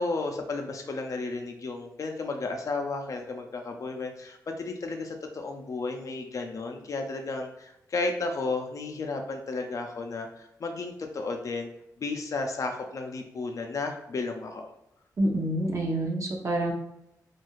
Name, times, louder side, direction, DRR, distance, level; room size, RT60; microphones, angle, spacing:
voice 1, 0.0-11.7 12.0-14.7, left 3 dB, 50° left, 4 dB, 0.5 m, -33 dB
voice 2, 15.2-16.7, right 1 dB, 45° right, 0 dB, 0.7 m, -27 dB
2.4 x 2.2 x 3.0 m, 0.83 s
cardioid pair, 60°, 7 cm